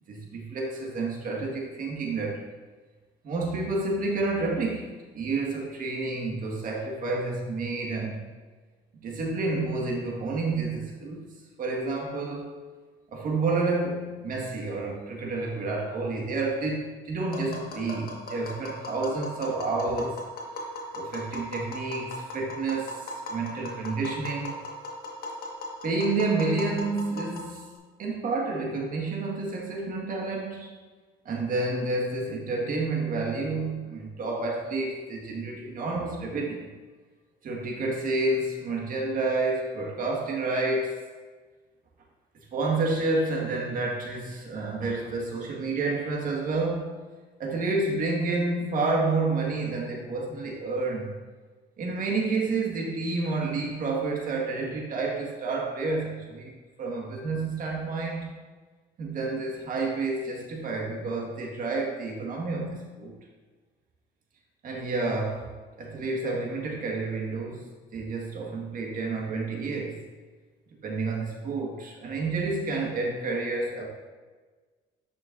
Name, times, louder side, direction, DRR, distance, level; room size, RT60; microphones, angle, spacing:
voice 1, 0.1-2.4 3.2-8.2 9.0-11.3 11.6-12.5 13.1-20.2 20.9-24.6 25.8-27.6 28.0-30.7 31.2-36.7 37.4-41.0 42.5-46.9 47.4-51.1 51.8-58.3 59.0-63.2 64.6-65.5 65.8-70.0 70.8-73.9, right 3 dB, 55° right, -1 dB, 1.7 m, -29 dB
Tap, 17.3-27.8, left 1 dB, 65° left, 1.6 m, -38 dB
9.5 x 6.4 x 2.6 m, 1.4 s
cardioid pair, 110°, 17 cm